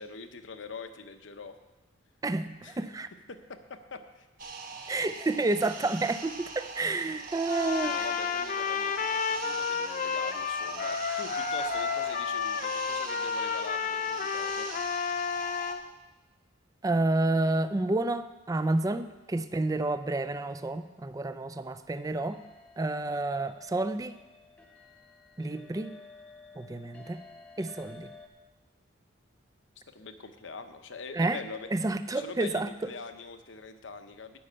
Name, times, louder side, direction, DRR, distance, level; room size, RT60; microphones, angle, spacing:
voice 1, 0.0-1.5 2.6-2.8 3.3-4.3 7.8-14.7 29.9-31.7 32.1-34.4, left 4 dB, 70° left, 8 dB, 0.8 m, -43 dB
voice 2, 2.2-3.1 4.9-7.9 16.8-22.4 22.8-24.2 25.4-25.9 26.6-27.2 27.6-28.1 31.1-31.4 31.7-32.7, right 2 dB, 20° right, 11 dB, 0.4 m, -29 dB
sound 1, 4.4-15.7, right 4 dB, 45° right, 1.1 m, -42 dB
Trumpet, 7.5-15.8, left 6 dB, 45° left, 0.5 m, -31 dB
sound 2, 21.9-28.3, left 3 dB, 5° left, 1.0 m, -53 dB
10.0 x 5.6 x 8.5 m, 1.1 s
head